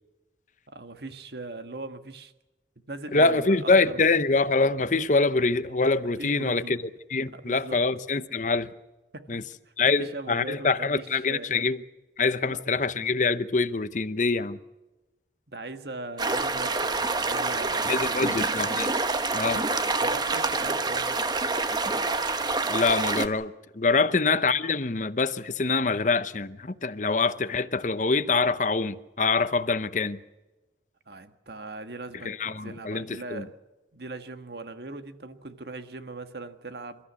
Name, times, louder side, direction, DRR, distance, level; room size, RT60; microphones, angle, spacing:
voice 1, 0.7-2.3 2.9-4.1 6.2-6.8 7.3-7.8 9.1-9.2 9.6-11.5 12.4-12.6 15.5-18.4 20.0-21.2 23.9-24.1 31.1-33.5 33.9-37.1, right 2 dB, 65° right, 1.6 m, -40 dB
voice 2, 3.1-6.8 7.1-8.7 9.3-9.4 9.8-11.8 12.2-14.6 17.9-18.9 19.3-19.6 22.7-30.2 32.2-33.5, left 3 dB, 45° left, 0.9 m, -25 dB
sound 1, 16.2-23.3, right 3 dB, 25° right, 1.1 m, -27 dB
28.0 x 13.5 x 8.3 m
head